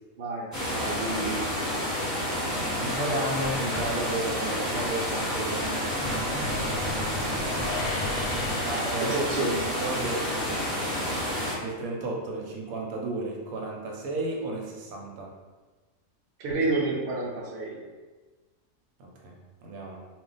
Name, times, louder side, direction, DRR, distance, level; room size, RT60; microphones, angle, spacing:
voice 1, 0.2-1.4 9.0-9.6 16.4-17.8, right 2 dB, 60° right, -4 dB, 0.9 m, -29 dB
sound 1, 0.5-11.5, equal, 15° left, 0.9 m, -30 dB
voice 2, 1.0-1.3 2.8-5.9 8.6-9.2 9.8-11.2 11.6-15.3 19.0-20.0, right 2 dB, 85° right, -1 dB, 1.0 m, -33 dB
sound 2, 3.4-4.4 5.6-8.5, left 1 dB, 5° right, 0.5 m, -36 dB
sound 3, 7.7-9.9, left 3 dB, 65° left, 0.8 m, -37 dB
2.4 x 2.2 x 3.8 m, 1.3 s
omnidirectional pair, 1.5 m